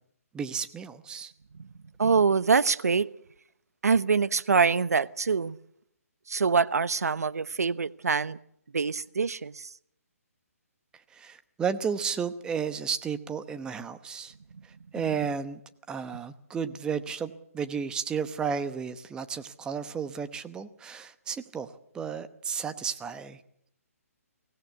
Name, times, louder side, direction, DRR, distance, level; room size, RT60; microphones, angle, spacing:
voice 1, 0.3-1.3 11.1-14.3 14.6-15.6 15.9-23.4, right 6 dB, 10° right, 11 dB, 1.0 m, -33 dB
voice 2, 2.0-3.1 3.8-5.6 6.3-8.4 8.7-9.7 14.5-14.6, right 5 dB, 85° right, 17 dB, 0.9 m, -25 dB
23.5 x 17.5 x 8.2 m, 0.70 s
hypercardioid pair, 150°, 8 cm